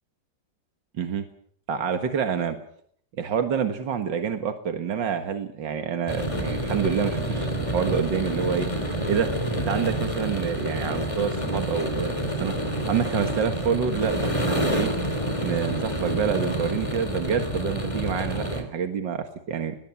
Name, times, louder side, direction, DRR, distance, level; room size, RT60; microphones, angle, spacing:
voice 1, 1.0-1.3 1.7-2.6 3.2-8.7 9.1-12.1 12.4-12.5 12.9-14.9 15.4-19.8, right 7 dB, 75° right, 7 dB, 2.3 m, -27 dB
sound 1, 6.1-18.6, equal, 15° left, 3.7 m, -28 dB
21.0 x 21.0 x 7.2 m, 0.62 s
omnidirectional pair, 2.0 m